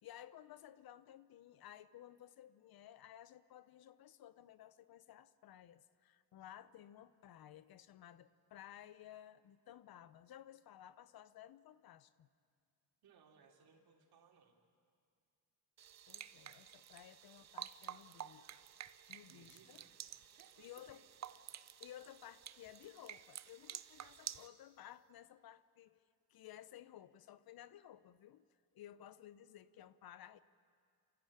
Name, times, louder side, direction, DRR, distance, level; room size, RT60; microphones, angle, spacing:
voice 1, 0.0-12.3 16.1-18.5 19.1-19.8 20.6-21.0 21.8-28.4 28.7-30.4, left 11 dB, 60° left, 16 dB, 0.8 m, -56 dB
voice 2, 13.0-14.6 19.3-19.9 20.3-21.2, right 6 dB, 65° right, 1 dB, 3.5 m, -66 dB
sound 1, 15.8-24.5, right 10 dB, 40° right, 0.7 m, -51 dB
30.0 x 13.5 x 8.8 m, 2.2 s
cardioid pair, 110°, 40 cm